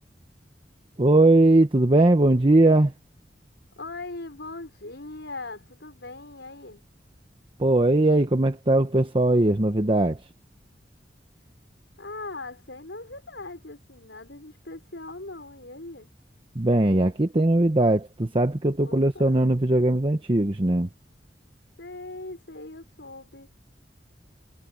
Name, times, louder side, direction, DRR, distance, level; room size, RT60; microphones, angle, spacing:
voice 1, 1.0-2.9 7.6-10.2 16.5-20.9, right 2 dB, 30° right, 1.0 m, -20 dB
voice 2, 3.8-6.8 12.0-16.1 18.8-19.4 21.8-23.5, left 2 dB, 80° left, 5.3 m, -40 dB
head